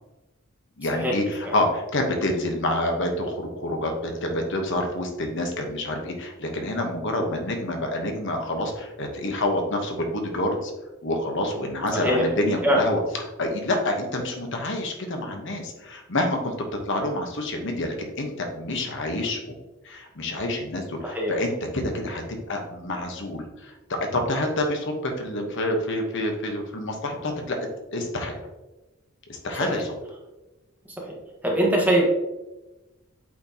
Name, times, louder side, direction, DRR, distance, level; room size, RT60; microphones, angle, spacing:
voice 1, 0.8-10.7 11.0-13.0 13.4-16.5 16.9-19.5 19.8-27.6 27.9-28.4 29.3-29.9 31.6-31.7, left 1 dB, 65° left, 3 dB, 1.1 m, -28 dB
voice 2, 11.9-12.2 12.6-12.8 21.0-21.3 29.7-29.8 31.4-32.1, equal, 10° right, -3 dB, 1.5 m, -22 dB
8.5 x 4.5 x 2.9 m, 1.0 s
head